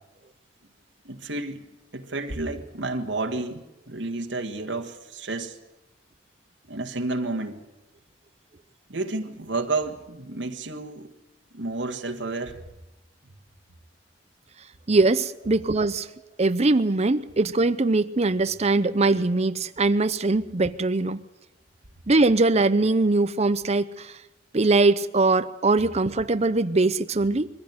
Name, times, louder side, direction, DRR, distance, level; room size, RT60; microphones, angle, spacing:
voice 1, 1.1-1.7 1.9-5.6 6.7-7.6 8.9-11.1 11.5-12.6, right 2 dB, 85° right, 4 dB, 1.8 m, -31 dB
voice 2, 14.9-16.1 16.4-21.2 22.1-24.1 24.5-27.5, right 3 dB, 35° right, 11 dB, 0.7 m, -21 dB
22.5 x 15.5 x 9.6 m, 0.95 s
head